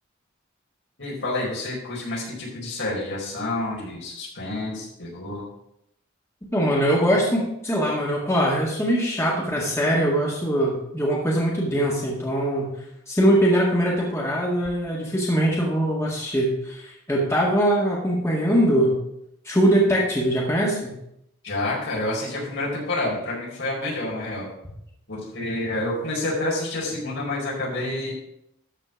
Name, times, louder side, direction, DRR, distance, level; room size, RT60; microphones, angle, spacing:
voice 1, 1.0-5.4 21.4-24.5 25.1-28.1, left 2 dB, 65° left, -5 dB, 4.5 m, -28 dB
voice 2, 6.5-12.8 13.1-19.0 19.5-20.9, equal, 15° left, -4 dB, 1.8 m, -22 dB
13.0 x 4.4 x 5.8 m, 0.79 s
head